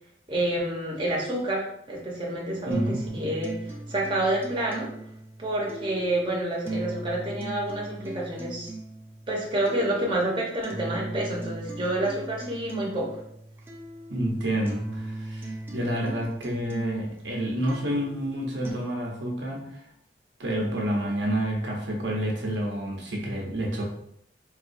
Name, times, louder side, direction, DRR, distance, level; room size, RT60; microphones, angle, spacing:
voice 1, 0.3-4.9 5.4-8.7 9.3-13.1, right 1 dB, 30° right, -3 dB, 0.8 m, -28 dB
sound 1, 2.7-18.7, right 2 dB, 15° right, 0.4 m, -38 dB
voice 2, 2.7-3.0 14.1-19.8 20.4-23.8, right 1 dB, 80° right, -1 dB, 0.8 m, -29 dB
4.0 x 2.4 x 2.6 m, 0.73 s
head